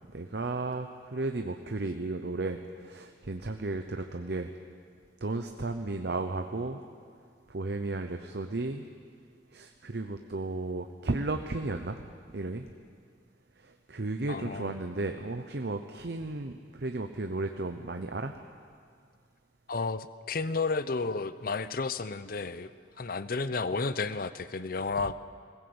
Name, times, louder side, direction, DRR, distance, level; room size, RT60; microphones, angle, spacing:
voice 1, 0.1-4.5 5.2-6.8 7.5-8.9 9.5-12.7 13.6-18.3, right 2 dB, 60° right, 6 dB, 0.8 m, -34 dB
voice 2, 14.3-14.7 19.7-22.7 23.0-25.1, left 4 dB, 50° left, 14 dB, 0.7 m, -32 dB
20.5 x 17.0 x 7.9 m, 2.2 s
head